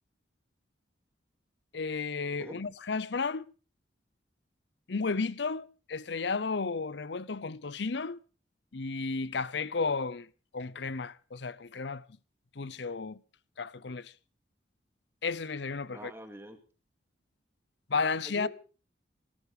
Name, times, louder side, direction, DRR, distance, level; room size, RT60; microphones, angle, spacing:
voice 1, 1.7-3.5 4.9-8.2 8.7-10.3 10.5-12.0 12.6-13.2 13.6-14.1 15.2-16.1 17.9-18.5, left 4 dB, 65° left, 0.7 m, -33 dB
voice 2, 15.9-16.6 18.3-18.5, equal, 15° right, 2.2 m, -44 dB
18.0 x 13.5 x 4.9 m
head